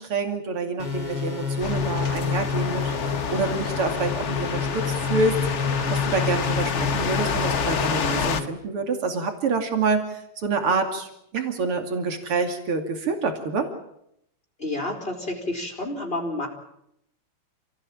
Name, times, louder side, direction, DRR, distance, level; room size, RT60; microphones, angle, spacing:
voice 1, 0.0-13.7, right 3 dB, 90° right, 5 dB, 3.5 m, -27 dB
sound 1, 0.8-8.5, left 5 dB, 90° left, 5.7 m, -29 dB
sound 2, 1.6-8.4, left 6 dB, 45° left, 1.1 m, -28 dB
voice 2, 14.6-16.5, left 1 dB, 25° left, 0 dB, 4.0 m, -29 dB
28.5 x 18.0 x 8.8 m, 0.78 s
omnidirectional pair, 2.4 m